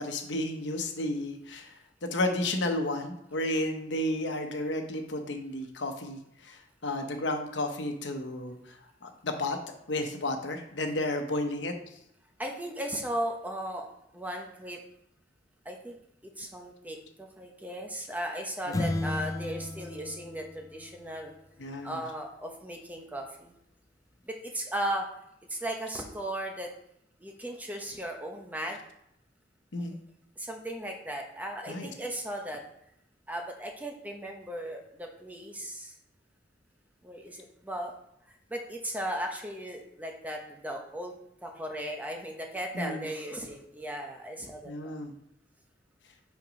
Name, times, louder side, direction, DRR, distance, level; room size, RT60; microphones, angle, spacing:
voice 1, 0.0-1.7 2.1-6.2 6.8-8.6 9.2-9.6 9.9-11.7 21.6-22.0 29.7-29.9 31.7-31.9 42.7-43.1 44.7-45.1, left 1 dB, 90° left, 5 dB, 1.0 m, -32 dB
voice 2, 12.4-13.9 14.1-14.8 15.6-16.0 16.4-21.3 21.8-23.5 24.2-25.1 25.5-26.7 27.2-28.8 30.4-32.6 33.3-35.9 37.0-37.9 38.5-41.1 41.4-44.9, right 1 dB, 10° right, 2 dB, 0.9 m, -36 dB
sound 1, 18.7-21.4, left 2 dB, 20° left, 0.3 m, -34 dB
5.9 x 4.4 x 5.2 m, 0.76 s
head